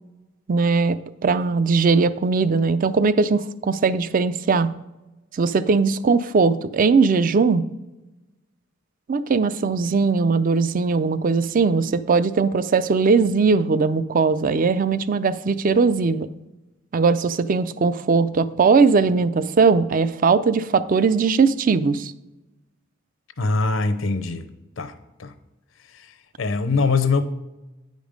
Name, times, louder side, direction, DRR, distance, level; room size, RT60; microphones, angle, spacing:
voice 1, 0.5-4.7 5.3-7.6 9.1-16.3 16.9-22.1, right 4 dB, 45° right, 0.4 m, -19 dB
voice 2, 23.4-24.5 24.8-24.9 25.2-25.3 25.9-27.2, left 4 dB, 75° left, 0.7 m, -23 dB
9.6 x 5.2 x 5.2 m
head